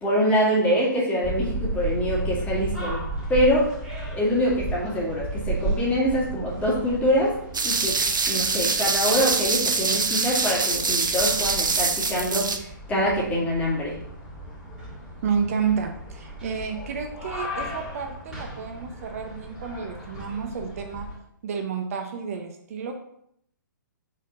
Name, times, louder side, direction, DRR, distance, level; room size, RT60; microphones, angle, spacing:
voice 1, 0.0-3.0 3.3-3.7 4.1-7.4 7.6-8.0 8.3-14.0, equal, 15° left, -6 dB, 2.2 m, -24 dB
sound 1, 1.2-21.1, right 1 dB, 5° right, 2.4 m, -34 dB
sound 2, 7.5-12.6, right 4 dB, 70° right, 0.7 m, -24 dB
voice 2, 15.2-21.1 21.4-22.9, right 6 dB, 45° right, 4 dB, 0.9 m, -30 dB
5.1 x 4.1 x 5.2 m, 0.72 s
figure-of-eight pair, 125°, 11 cm